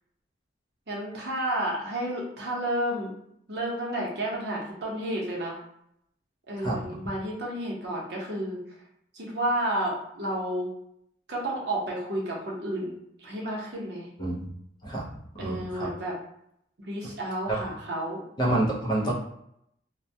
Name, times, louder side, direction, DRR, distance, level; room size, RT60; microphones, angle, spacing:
voice 1, 0.9-3.1 3.5-5.6 6.5-8.6 9.1-10.7 11.3-14.1 15.4-16.2 16.8-18.2, right 1 dB, 65° right, -3 dB, 0.7 m, -31 dB
voice 2, 15.4-15.9 17.5-17.6 18.4-19.1, right 1 dB, 25° left, -3 dB, 0.5 m, -27 dB
2.1 x 2.1 x 2.6 m, 0.75 s
head